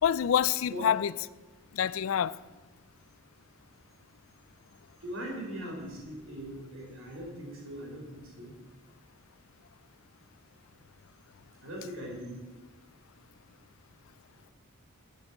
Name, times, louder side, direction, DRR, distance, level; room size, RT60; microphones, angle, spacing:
voice 1, 0.0-1.1 1.7-2.4, left 9 dB, 70° left, 0.3 m, -26 dB
voice 2, 5.0-8.5 11.6-12.4, equal, 65° right, 3.5 m, -40 dB
8.5 x 6.6 x 8.1 m
head